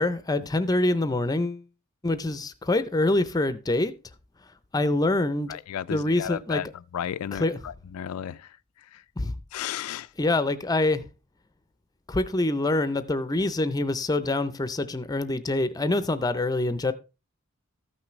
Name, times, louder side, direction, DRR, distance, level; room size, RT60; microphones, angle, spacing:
voice 1, 0.0-1.6 2.0-3.9 4.7-5.5 5.9-6.6 7.3-7.6 9.2-9.4 10.2-11.1 12.1-16.9, left 2 dB, 15° left, 0.5 m, -25 dB
voice 2, 5.5-6.7 6.9-8.6 8.9-9.0 9.5-10.1, left 9 dB, 80° left, 0.3 m, -33 dB
14.0 x 5.9 x 3.1 m
head